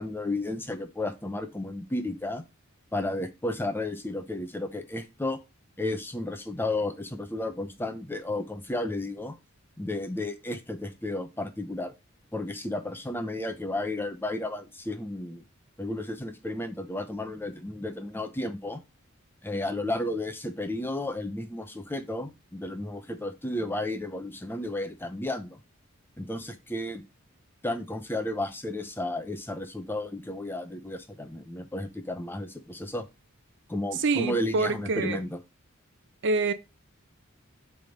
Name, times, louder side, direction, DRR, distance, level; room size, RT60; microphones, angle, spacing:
voice 1, 0.0-2.4 2.9-5.4 5.8-9.4 9.8-11.9 12.3-15.4 15.8-18.8 19.4-25.6 26.2-27.0 27.6-33.0 33.7-35.4, left 1 dB, 10° left, 0.7 m, -33 dB
voice 2, 34.0-35.2 36.2-36.5, right 3 dB, 60° right, 0.7 m, -26 dB
7.3 x 3.6 x 5.2 m
head